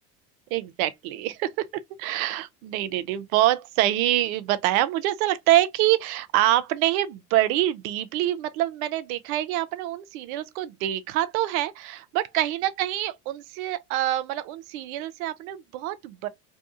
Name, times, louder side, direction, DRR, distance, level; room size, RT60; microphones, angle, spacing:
voice 1, 0.5-1.7 2.0-16.3, right 14 dB, 65° right, 0.5 m, -25 dB
2.7 x 2.2 x 2.4 m
hypercardioid pair, 75°, 47 cm